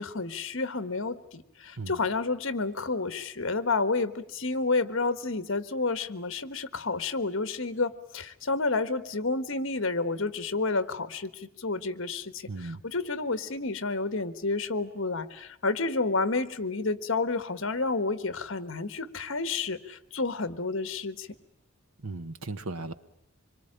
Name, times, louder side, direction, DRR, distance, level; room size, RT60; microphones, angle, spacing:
voice 1, 0.0-21.3, left 3 dB, 65° left, 12 dB, 1.4 m, -30 dB
voice 2, 12.5-12.8 22.0-22.9, right 3 dB, 90° right, 11 dB, 1.3 m, -36 dB
26.0 x 23.0 x 8.8 m, 0.76 s
head